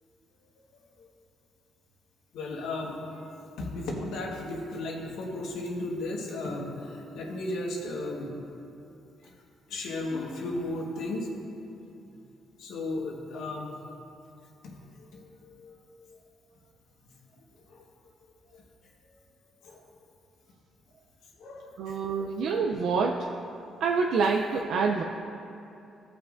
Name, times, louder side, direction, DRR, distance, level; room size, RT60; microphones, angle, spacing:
voice 1, 2.3-3.2 3.6-8.3 8.8-8.9 9.2-9.3 9.7-11.3 12.6-13.7 14.6-16.2 17.7-17.8 18.5-18.6 19.6-19.8 21.4-22.0 22.3-22.4, left 2 dB, 80° left, -1 dB, 1.4 m, -35 dB
voice 2, 21.8-23.3 23.8-25.0, right 4 dB, 75° right, 1 dB, 0.5 m, -26 dB
16.5 x 5.6 x 2.5 m, 2.8 s
cardioid pair, 90°, 0 cm